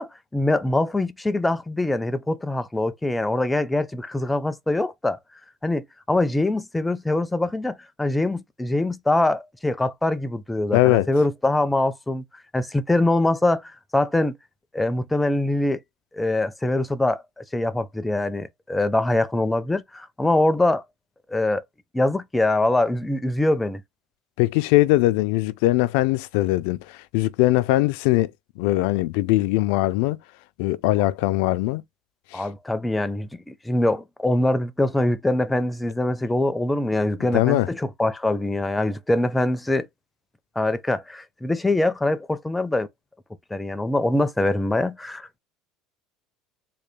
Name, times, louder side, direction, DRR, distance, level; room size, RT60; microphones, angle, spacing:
voice 1, 0.0-5.2 5.6-12.2 12.5-14.4 14.7-15.8 16.1-20.8 21.3-21.6 21.9-23.8 32.3-39.9 40.6-42.9 43.5-45.4, left 2 dB, 10° left, 0.4 m, -23 dB
voice 2, 10.7-11.1 24.4-28.3 28.6-30.2 30.6-31.8 32.3-32.4 37.3-37.7, left 17 dB, 80° left, 0.3 m, -21 dB
3.7 x 2.3 x 3.4 m
supercardioid pair, 125°, 0 cm